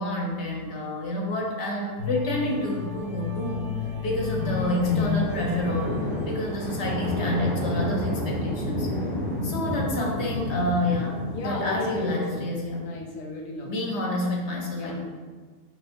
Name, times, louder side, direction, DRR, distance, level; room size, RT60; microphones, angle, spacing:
voice 1, 0.0-8.9 9.4-12.8 13.7-15.0, left 1 dB, 60° left, -1 dB, 0.8 m, -29 dB
sound 1, 2.0-7.2 7.7-7.9, left 6 dB, 85° right, 1.2 m, -32 dB
sound 2, 4.4-12.1, left 1 dB, 35° left, 0.9 m, -30 dB
voice 2, 11.3-12.5 12.8-13.9 14.8-15.0, left 2 dB, 75° left, 1 dB, 1.2 m, -35 dB
4.2 x 3.3 x 2.5 m, 1.5 s
omnidirectional pair, 1.7 m